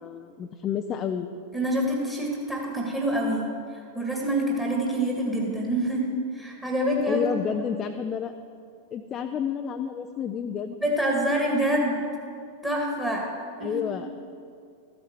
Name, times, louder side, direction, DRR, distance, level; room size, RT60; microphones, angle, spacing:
voice 1, 0.0-1.3 7.1-8.3 8.9-10.7 13.6-14.1, left 8 dB, 30° left, 6 dB, 0.5 m, -30 dB
voice 2, 1.5-3.4 3.7-6.1 6.3-7.2 10.8-12.0 12.6-13.3 13.6-14.0, right 1 dB, 10° right, -2 dB, 1.7 m, -26 dB
14.0 x 8.2 x 4.5 m, 2.3 s
figure-of-eight pair, 90°, 0 cm